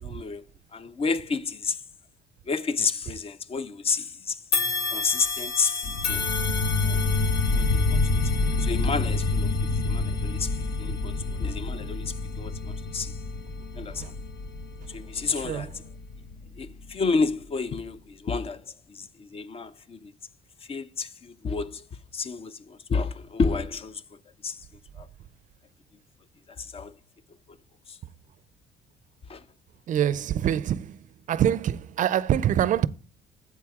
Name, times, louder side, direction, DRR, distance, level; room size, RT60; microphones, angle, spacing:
voice 1, 0.0-0.4 0.7-1.8 2.5-4.4 4.9-6.3 6.8-7.0 7.5-9.5 9.8-13.2 13.8-14.1 14.9-15.8 16.6-20.1 20.7-21.8 22.1-24.0 24.4-24.6 25.0-25.1 26.5-26.9 27.5-27.6 27.9-28.0 29.3-29.5, left 4 dB, 35° left, 0.5 m, -30 dB
sound 1, 4.5-13.8 14.3-14.5 15.5-15.6, left 4 dB, 85° left, 1.5 m, -34 dB
sound 2, 5.8-16.9, left 3 dB, 60° left, 1.1 m, -27 dB
voice 2, 29.9-31.0 31.3-32.9, right 10 dB, 50° right, 0.5 m, -24 dB
9.3 x 7.8 x 3.6 m
cardioid pair, 110°, 17 cm